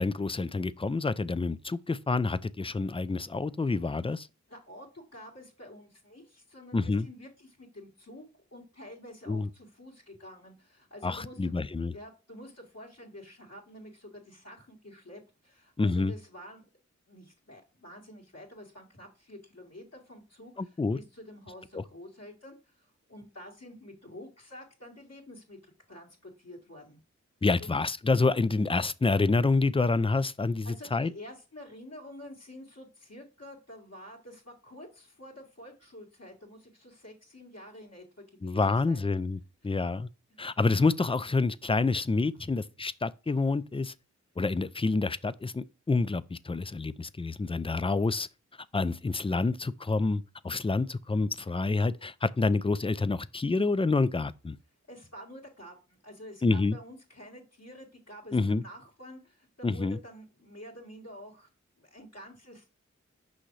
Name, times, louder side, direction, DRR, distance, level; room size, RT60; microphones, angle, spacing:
voice 1, 0.0-4.3 6.7-7.1 9.3-9.5 11.0-11.9 15.8-16.1 20.6-21.0 21.7-21.8 27.4-31.1 38.4-39.4 39.6-40.1 40.4-43.9 44.4-48.3 48.7-54.6 56.4-56.8 58.3-58.6 59.6-60.0, left 3 dB, 20° left, 0.4 m, -28 dB
voice 2, 4.5-11.6 11.9-16.6 17.1-27.0 27.6-27.7 30.6-39.1 39.6-39.8 40.3-40.4 42.3-42.5 54.9-61.5 61.8-62.8, left 1 dB, 55° left, 2.2 m, -49 dB
6.3 x 5.6 x 3.2 m
wide cardioid pair, 45°, 29 cm